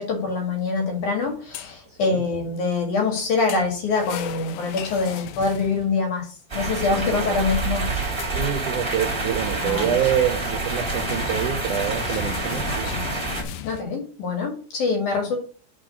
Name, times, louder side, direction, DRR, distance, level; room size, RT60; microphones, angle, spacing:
voice 1, 0.0-8.1 9.6-9.9 13.6-15.4, left 4 dB, 55° left, 2 dB, 2.8 m, -25 dB
sound 1, 1.2-2.0 3.1-6.2 7.4-8.3 9.2-13.8, left 8 dB, 90° left, 3.0 m, -36 dB
voice 2, 1.9-2.3 6.9-7.4 8.3-13.0, right 9 dB, 75° right, 4 dB, 1.8 m, -26 dB
sound 2, 6.5-13.4, right 3 dB, 15° right, 1.1 m, -27 dB
5.9 x 4.9 x 6.5 m, 0.40 s
omnidirectional pair, 5.0 m